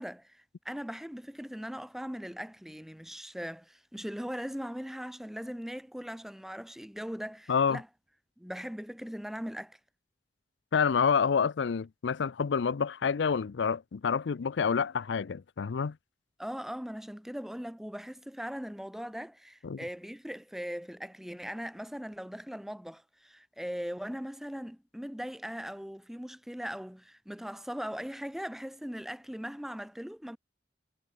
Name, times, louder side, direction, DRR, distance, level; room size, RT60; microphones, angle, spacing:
voice 1, 0.0-7.9 8.4-9.8 16.4-30.4, equal, ahead, 0.6 m, -40 dB
voice 2, 7.5-7.8 10.7-16.0 19.6-19.8, left 6 dB, 75° left, 0.5 m, -28 dB
head